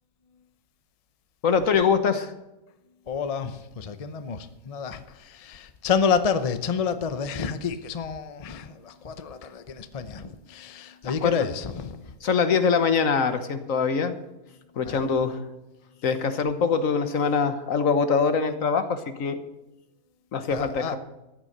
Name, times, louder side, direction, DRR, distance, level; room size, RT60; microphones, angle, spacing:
voice 1, 1.4-2.3 11.0-11.5 12.2-14.1 14.8-15.4 16.0-19.4 20.3-21.0, left 5 dB, 70° left, 10 dB, 1.5 m, -23 dB
voice 2, 3.1-12.1 14.8-15.0 20.5-21.0, left 6 dB, 35° left, 11 dB, 0.7 m, -29 dB
14.0 x 9.4 x 6.7 m, 0.98 s
omnidirectional pair, 1.5 m